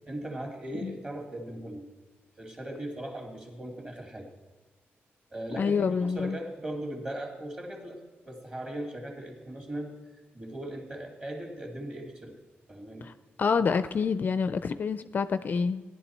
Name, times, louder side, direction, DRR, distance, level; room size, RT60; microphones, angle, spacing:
voice 1, 0.1-1.9 2.4-4.3 5.3-9.9 10.3-12.4 12.7-13.1, right 1 dB, 25° right, 1 dB, 2.3 m, -38 dB
voice 2, 5.6-6.4 13.0-13.1 13.4-15.8, left 5 dB, 45° left, 12 dB, 0.4 m, -27 dB
16.5 x 11.0 x 4.3 m, 1.3 s
wide cardioid pair, 135°, 4 cm